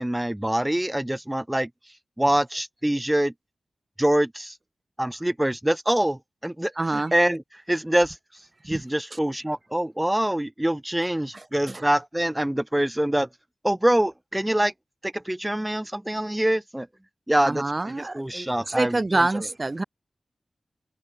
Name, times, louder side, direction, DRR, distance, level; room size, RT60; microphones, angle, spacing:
voice 1, 0.0-1.7 2.2-3.3 4.0-4.6 5.0-7.4 7.7-8.2 8.7-13.3 13.6-14.7 15.0-16.9 17.3-19.0, right 1 dB, 10° right, 2.0 m, -25 dB
voice 2, 6.8-7.1 8.6-8.8 9.1-9.2 11.3-11.8 17.4-19.8, right 2 dB, 30° right, 3.2 m, -27 dB
wide cardioid pair, 95°, 0 cm